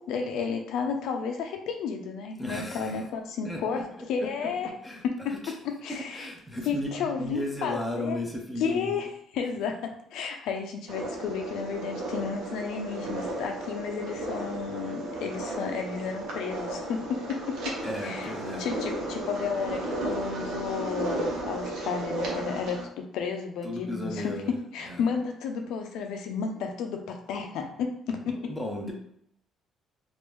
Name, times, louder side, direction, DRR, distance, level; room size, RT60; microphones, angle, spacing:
voice 1, 0.0-4.7 5.0-6.3 6.6-8.2 8.6-9.1 9.3-18.3 18.6-24.3 24.7-28.5, left 6 dB, 80° left, 4 dB, 0.5 m, -32 dB
voice 2, 2.4-3.0 3.4-4.3 4.8-5.5 5.9-8.9 17.8-18.7 23.6-24.5 24.8-25.1 28.4-28.9, left 1 dB, 5° left, 0 dB, 0.6 m, -35 dB
sound 1, 10.9-22.8, right 1 dB, 80° right, 0.9 m, -34 dB
3.4 x 2.5 x 3.1 m, 0.70 s
cardioid pair, 165°, 0 cm